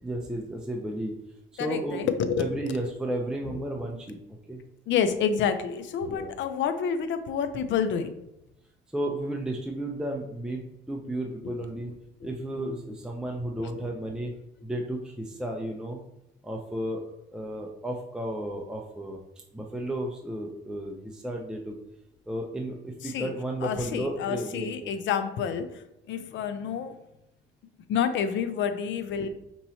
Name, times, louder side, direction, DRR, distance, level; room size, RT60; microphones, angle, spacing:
voice 1, 0.0-1.2 1.5-2.0 2.4-4.2 4.5-4.6 6.1-6.3 8.9-11.9 12.2-14.3 14.6-16.0 16.4-19.2 19.5-21.7 22.3-24.9, right 1 dB, 5° right, 1 dB, 0.5 m, -33 dB
voice 2, 1.6-2.8 4.9-8.2 11.4-11.5 13.6-13.8 23.0-23.3 23.6-25.8 26.1-27.0 27.9-29.3, left 7 dB, 70° left, 9 dB, 0.5 m, -28 dB
5.3 x 3.0 x 2.7 m, 0.86 s
cardioid pair, 90°, 20 cm